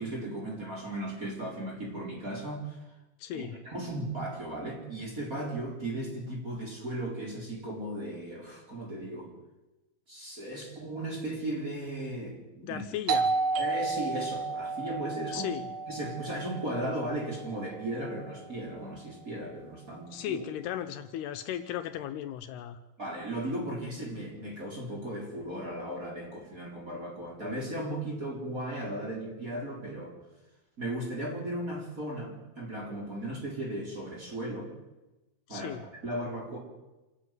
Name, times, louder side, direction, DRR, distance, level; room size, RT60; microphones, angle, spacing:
voice 1, 0.0-2.8 3.3-9.3 10.1-12.8 13.6-15.5 15.9-20.5 23.0-30.1 30.8-34.7 35.5-36.6, right 1 dB, 20° right, -1 dB, 4.3 m, -36 dB
voice 2, 3.2-3.5 12.6-13.3 15.3-15.7 20.1-22.8 35.5-35.8, left 11 dB, 75° left, 9 dB, 2.8 m, -36 dB
Doorbell, 13.1-18.5, right 4 dB, 60° right, 2.1 m, -33 dB
27.0 x 11.5 x 9.4 m, 1.0 s
omnidirectional pair, 4.8 m